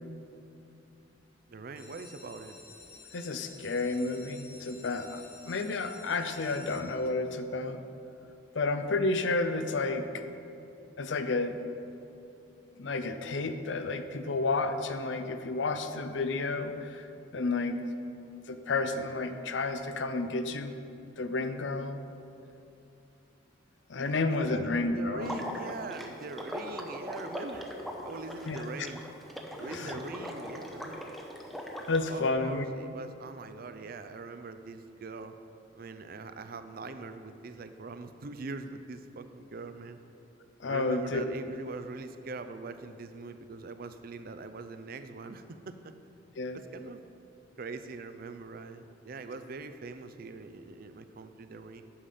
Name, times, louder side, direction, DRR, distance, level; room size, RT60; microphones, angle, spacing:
voice 1, 1.5-2.6 24.0-27.7 28.0-29.0 29.6-31.2 32.1-35.4 35.7-40.0 40.7-45.9 46.5-47.0 47.6-51.9, right 3 dB, 50° right, 10 dB, 0.5 m, -42 dB
sound 1, 1.8-7.4 8.0-8.5 8.9-9.0 9.2-9.3 9.7-9.9, left 4 dB, 55° left, 1.5 m, -52 dB
voice 2, 3.1-7.8 8.5-10.2 11.0-11.6 12.8-17.1 17.3-17.8 18.5-20.7 21.2-22.0 23.9-25.4 28.5-28.7 29.7-30.0 31.9-32.7 40.6-41.2 46.4-46.6, left 3 dB, 70° left, 9 dB, 0.6 m, -31 dB
Water / Liquid, 25.2-32.0, equal, ahead, 0.7 m, -40 dB
8.6 x 6.6 x 5.5 m, 2.8 s
head